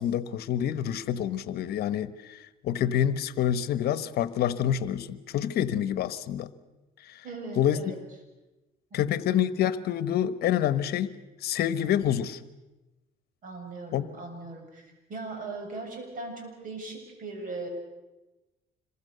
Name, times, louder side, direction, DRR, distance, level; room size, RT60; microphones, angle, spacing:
voice 1, 0.0-6.5 7.1-7.2 7.6-7.8 8.9-11.1 11.4-12.4 13.9-14.1, left 10 dB, 70° left, 14 dB, 1.1 m, -27 dB
voice 2, 7.2-8.0 8.9-9.1 13.4-17.7, right 3 dB, 55° right, 3 dB, 7.5 m, -39 dB
26.5 x 22.5 x 6.8 m, 1.1 s
cardioid pair, 110°, 17 cm